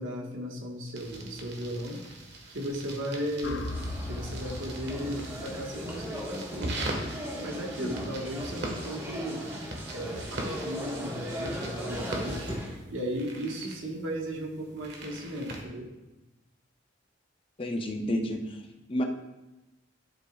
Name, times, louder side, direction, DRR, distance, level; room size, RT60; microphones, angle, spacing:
voice 1, 0.0-2.0 2.5-3.7 4.0-6.9 7.4-9.5 9.9-12.5 12.9-15.9, equal, 80° right, 0 dB, 1.5 m, -36 dB
sound 1, 0.9-15.6, right 1 dB, 60° right, 1.5 m, -40 dB
sound 2, 3.4-7.6, left 2 dB, 65° left, 0.6 m, -40 dB
sound 3, 3.7-12.8, equal, 15° right, 1.4 m, -39 dB
voice 2, 17.6-18.4 18.9-19.0, equal, 30° left, 3 dB, 0.7 m, -30 dB
11.5 x 6.4 x 2.4 m, 1.0 s
head